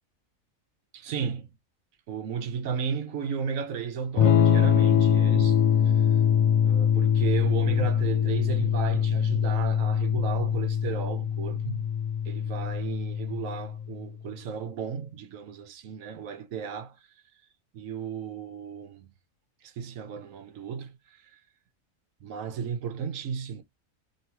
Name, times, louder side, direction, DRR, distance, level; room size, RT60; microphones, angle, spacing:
voice 1, 0.9-1.5 2.1-5.6 5.8-6.2 6.6-11.9 12.2-17.0 17.7-19.1 19.6-21.3 22.2-23.6, right 7 dB, 75° right, 1.1 m, -34 dB
Electric guitar / Strum, 4.2-13.9, left 8 dB, 90° left, 1.1 m, -23 dB
3.1 x 2.9 x 4.5 m
omnidirectional pair, 1.4 m